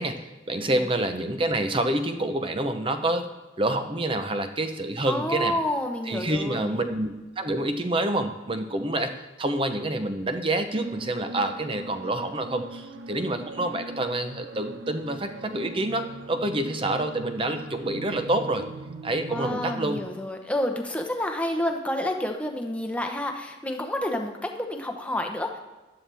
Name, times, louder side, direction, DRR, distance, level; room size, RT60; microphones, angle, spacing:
voice 1, 0.0-3.3 3.6-5.6 6.1-9.1 9.4-18.7 19.0-20.0, right 1 dB, 25° right, 8 dB, 0.7 m, -27 dB
voice 2, 5.1-6.9 19.3-25.6, left 1 dB, 5° left, 3 dB, 0.9 m, -29 dB
sound 1, 10.8-20.0, right 2 dB, 85° right, 0.9 m, -41 dB
12.0 x 11.5 x 3.5 m, 1.2 s
head